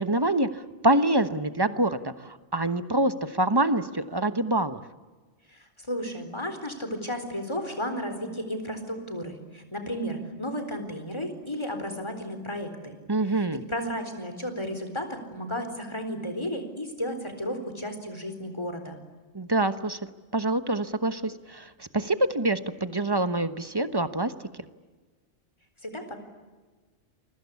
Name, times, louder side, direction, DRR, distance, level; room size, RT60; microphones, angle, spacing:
voice 1, 0.0-4.8 13.1-13.6 19.3-20.0 20.3-24.3, right 2 dB, 20° right, 11 dB, 1.1 m, -26 dB
voice 2, 5.5-13.0 13.3-19.0 25.8-26.2, equal, 25° left, 7 dB, 4.1 m, -33 dB
28.5 x 23.0 x 8.4 m, 1.3 s
omnidirectional pair, 1.2 m